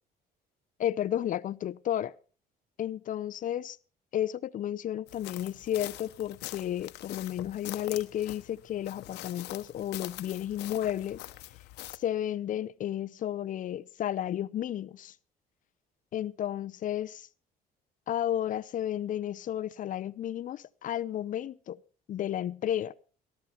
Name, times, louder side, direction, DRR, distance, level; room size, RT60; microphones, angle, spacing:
voice 1, 0.8-2.1 2.8-3.8 4.1-11.3 11.9-15.1 16.1-17.3 18.1-21.8 22.1-22.9, left 11 dB, 50° left, 0.6 m, -32 dB
sound 1, 5.1-12.0, left 16 dB, 85° left, 1.0 m, -43 dB
17.5 x 13.5 x 4.4 m
cardioid pair, 110°, 17 cm